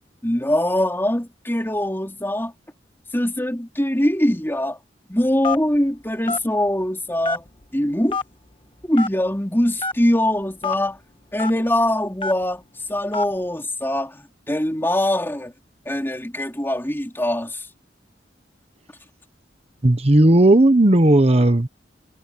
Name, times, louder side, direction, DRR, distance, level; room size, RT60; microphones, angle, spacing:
voice 1, 0.2-2.5 3.1-4.8 5.1-7.4 7.7-8.2 8.9-11.0 11.3-12.6 12.9-15.5 15.9-17.6, left 1 dB, 15° left, 4.0 m, -22 dB
Telephone, 5.4-5.8 6.3-6.5 7.2-7.6 8.1-8.2 9.0-9.1 9.8-9.9 10.6-10.8 11.4-11.5 12.2-12.4 13.1-13.3, left 4 dB, 30° left, 1.4 m, -25 dB
voice 2, 19.8-21.7, right 1 dB, 35° right, 1.0 m, -14 dB
head